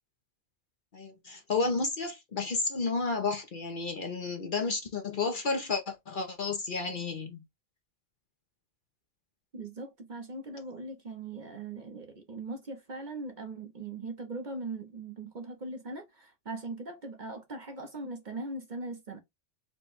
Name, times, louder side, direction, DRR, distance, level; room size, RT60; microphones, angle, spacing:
voice 1, 0.9-7.4, left 4 dB, 50° left, 0.8 m, -31 dB
voice 2, 9.5-19.2, right 2 dB, 45° right, 0.8 m, -40 dB
4.4 x 2.2 x 4.1 m
omnidirectional pair, 1.3 m